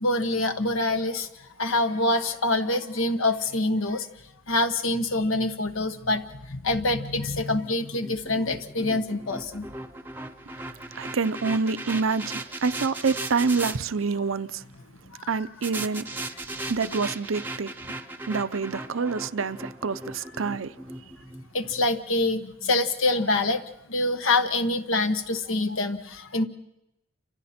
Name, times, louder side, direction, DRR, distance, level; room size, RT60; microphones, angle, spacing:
voice 1, 0.0-1.3 1.6-4.0 4.5-6.2 6.5-9.6 21.5-23.6 23.9-26.4, left 2 dB, 90° left, 1.3 m, -25 dB
sound 1, 7.6-13.8 15.6-21.9, right 2 dB, 10° right, 0.7 m, -37 dB
voice 2, 10.9-14.6 15.3-16.1 16.7-17.7 18.3-20.8, right 4 dB, 85° right, 0.7 m, -27 dB
29.5 x 26.0 x 4.4 m
head